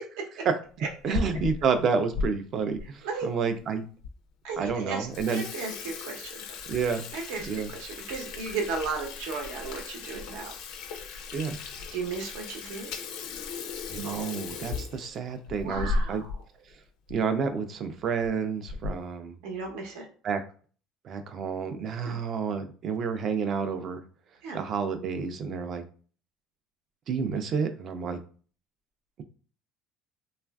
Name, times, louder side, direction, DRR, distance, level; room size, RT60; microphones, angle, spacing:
Water tap faucet / Sink (filling or washing), 0.8-2.3 2.8-2.9 3.6-3.7 4.0-4.1 4.5-4.7 5.0-16.4 16.7-16.8 17.1-17.2 18.0-18.3 18.7-19.1, left 4 dB, 75° left, 0.4 m, -36 dB
voice 1, 1.0-3.9 4.6-5.4 6.7-7.0 7.5-7.7 11.3-11.6 13.9-16.2 17.1-19.4 20.2-20.4 21.0-24.0 24.5-25.8 27.1-28.2, right 6 dB, 40° right, 9 dB, 0.4 m, -29 dB
voice 2, 4.4-6.4 7.1-10.6 11.9-12.9 15.6-16.3 19.4-20.1 22.0-22.1 24.4-24.6, right 4 dB, 85° right, 2 dB, 0.7 m, -35 dB
3.2 x 2.4 x 2.3 m, 0.41 s
cardioid pair, 150°, 0 cm